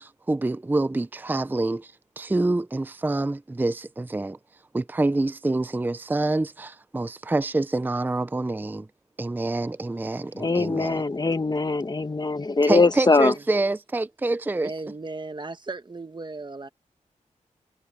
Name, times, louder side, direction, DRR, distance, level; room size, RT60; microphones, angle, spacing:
voice 1, 0.0-4.4 4.7-8.9 9.2-11.0 12.6-14.7, right 2 dB, 15° right, 0.5 m, -26 dB
voice 2, 10.4-13.3, left 3 dB, 30° left, 1.2 m, -22 dB
voice 3, 13.1-13.4 14.6-16.7, right 3 dB, 35° right, 1.3 m, -37 dB
wide cardioid pair, 80°, 14 cm